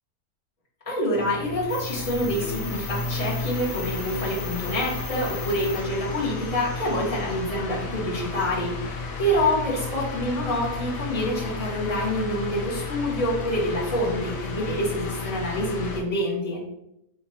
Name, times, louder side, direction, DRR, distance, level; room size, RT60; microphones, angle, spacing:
voice 1, 0.8-16.6, equal, 20° left, -7 dB, 1.5 m, -27 dB
sound 1, 1.1-16.0, left 3 dB, 85° left, 1.4 m, -33 dB
sound 2, 1.7-7.4, left 5 dB, 50° left, 0.9 m, -40 dB
6.4 x 2.8 x 2.7 m, 0.81 s
omnidirectional pair, 1.7 m